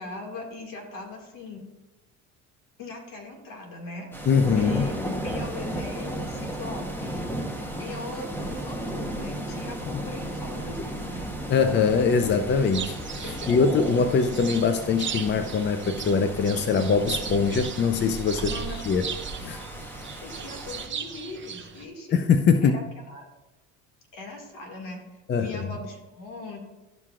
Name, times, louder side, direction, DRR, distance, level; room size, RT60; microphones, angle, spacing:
voice 1, 0.0-1.6 2.8-4.1 4.6-7.3 7.7-11.3 13.2-13.5 18.4-18.8 19.3-19.4 20.2-22.2 22.6-23.3 24.1-25.0 25.4-26.6, left 3 dB, 65° left, 1 dB, 2.2 m, -39 dB
sound 1, 4.1-20.9, right 1 dB, 5° left, 1.0 m, -35 dB
voice 2, 4.3-4.9 9.9-10.0 11.5-18.4 18.7-19.1 19.4-19.6 22.1-22.8 25.3-25.6, left 5 dB, 30° left, 8 dB, 0.5 m, -23 dB
sound 2, 12.5-21.9, right 7 dB, 30° right, 0.9 m, -37 dB
12.0 x 5.8 x 2.5 m, 1.0 s
supercardioid pair, 85°, 36 cm